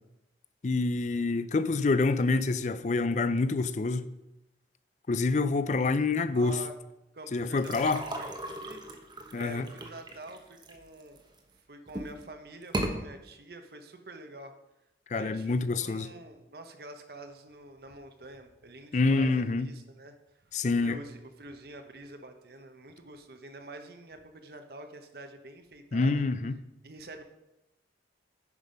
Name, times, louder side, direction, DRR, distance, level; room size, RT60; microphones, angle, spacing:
voice 1, 0.6-4.0 5.1-6.6 7.3-8.0 9.3-9.7 15.1-16.1 18.9-19.7 20.5-21.0 25.9-26.5, left 3 dB, 40° left, 0.4 m, -27 dB
voice 2, 6.3-6.8 7.1-8.9 9.3-11.2 11.7-14.6 15.1-20.1 20.6-26.2 26.8-27.2, right 2 dB, 55° right, 0.9 m, -47 dB
sound 1, 7.6-11.4 11.9-12.2 12.6-12.9, right 1 dB, 25° right, 0.8 m, -37 dB
9.7 x 5.5 x 5.2 m
head